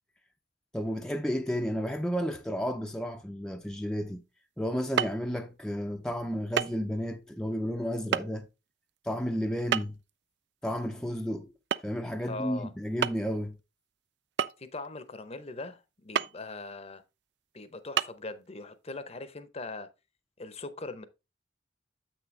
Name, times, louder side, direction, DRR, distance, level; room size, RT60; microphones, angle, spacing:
voice 1, 0.7-4.2 4.6-8.5 9.0-10.0 10.6-11.5 11.8-13.6, equal, 5° left, 0.5 m, -32 dB
sound 1, 5.0-5.2 6.6-6.8 7.1-7.2 8.1-8.2 9.7-10.1 11.7-12.0 12.3-12.4 13.0-13.4 14.4-14.9 16.2-16.4 17.0-17.1 18.0-18.1, right 8 dB, 65° right, 0.4 m, -28 dB
voice 2, 12.2-12.7 14.6-17.0 17.5-19.9 20.4-21.0, left 3 dB, 35° left, 0.7 m, -40 dB
7.7 x 6.1 x 3.2 m
head